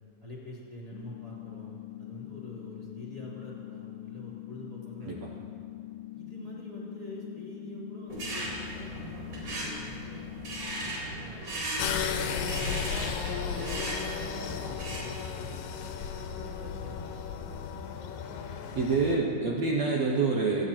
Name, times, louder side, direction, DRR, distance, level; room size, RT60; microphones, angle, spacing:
voice 1, 0.2-5.4 6.1-10.3 10.8-13.1 13.6-17.1, left 1 dB, 20° right, -6 dB, 2.9 m, -46 dB
sound 1, 0.9-10.9, left 16 dB, 85° left, 2.7 m, -43 dB
sound 2, 8.1-15.2, right 1 dB, 40° right, 4.9 m, -37 dB
sound 3, 11.8-19.2, left 7 dB, 70° left, 2.4 m, -34 dB
voice 2, 18.7-20.6, right 4 dB, 75° right, -2 dB, 1.5 m, -26 dB
27.0 x 9.3 x 4.5 m, 2.4 s
omnidirectional pair, 4.6 m